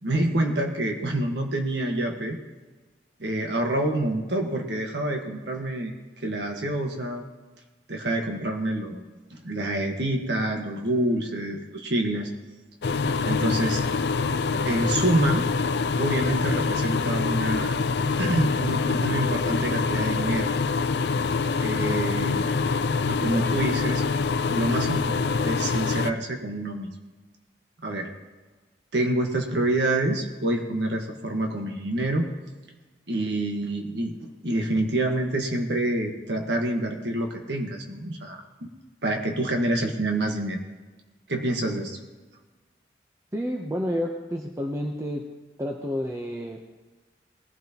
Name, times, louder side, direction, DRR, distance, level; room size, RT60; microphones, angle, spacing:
voice 1, 0.0-2.4 3.2-7.2 7.9-9.0 9.3-12.3 13.2-13.8 14.6-15.5 16.0-17.8 18.2-20.5 21.6-22.5 23.1-24.0 24.5-26.9 27.8-28.1 28.9-32.3 33.1-34.2 34.4-38.7 39.0-40.6 41.3-42.0, right 1 dB, 85° right, 3 dB, 1.5 m, -27 dB
sound 1, 12.8-26.1, left 4 dB, 75° left, 0.5 m, -25 dB
voice 2, 43.3-45.2 45.6-46.7, equal, 15° right, 1 dB, 0.7 m, -30 dB
20.0 x 11.5 x 2.9 m, 1.3 s
head